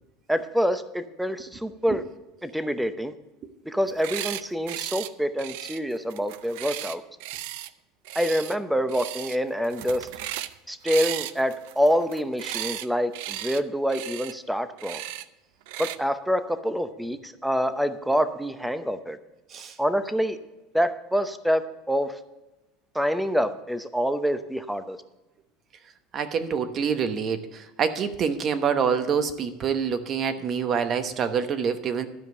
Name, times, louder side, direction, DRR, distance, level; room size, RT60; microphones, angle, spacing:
voice 1, 0.3-2.0 2.4-3.1 3.7-7.0 8.1-10.1 10.7-15.0 15.8-19.2 19.8-20.4 20.7-22.2 22.9-25.0, equal, ahead, 11 dB, 0.7 m, -26 dB
sound 1, 3.8-4.4 4.7-5.1 5.4-7.7 8.0-8.6 8.9-9.4 9.6-10.5 10.9-12.9 13.1-13.6 13.9-14.3 14.8-15.2 15.7-16.0, right 13 dB, 75° right, 0.5 m, -35 dB
voice 2, 26.1-32.1, right 6 dB, 40° right, 10 dB, 1.0 m, -26 dB
12.5 x 5.2 x 7.6 m, 1.1 s
supercardioid pair, 120°, 0 cm